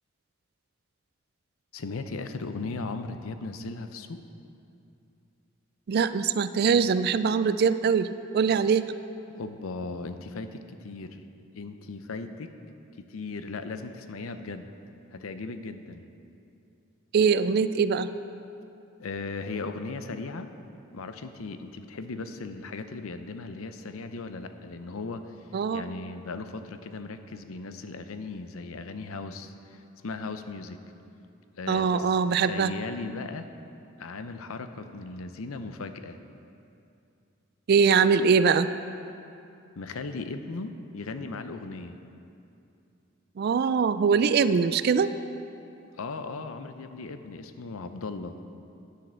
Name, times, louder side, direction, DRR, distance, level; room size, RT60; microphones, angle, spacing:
voice 1, 1.7-4.2 9.3-11.2 11.5-12.5 13.0-14.7 15.1-16.1 19.0-20.5 20.9-25.5 25.7-30.8 31.6-33.5 34.0-36.2 39.8-42.0 45.9-48.4, left 3 dB, 80° left, 9 dB, 0.6 m, -37 dB
voice 2, 5.9-8.1 8.3-8.9 17.1-18.1 25.5-25.8 31.7-32.7 37.7-38.7 43.4-45.1, right 6 dB, 50° right, 13 dB, 0.3 m, -22 dB
9.7 x 7.6 x 6.2 m, 2.7 s
head